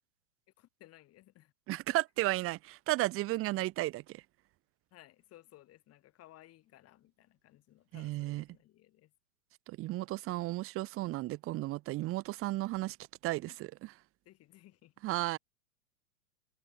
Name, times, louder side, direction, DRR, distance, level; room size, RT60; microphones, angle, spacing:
voice 1, 0.6-1.5 4.9-9.1 13.3-13.6 14.2-14.9, left 15 dB, 35° left, 5.0 m, -59 dB
voice 2, 1.7-4.2 7.9-8.4 9.7-13.0 13.2-13.9 15.0-15.4, right 18 dB, 30° right, 1.3 m, -34 dB
hypercardioid pair, 110°, 43 cm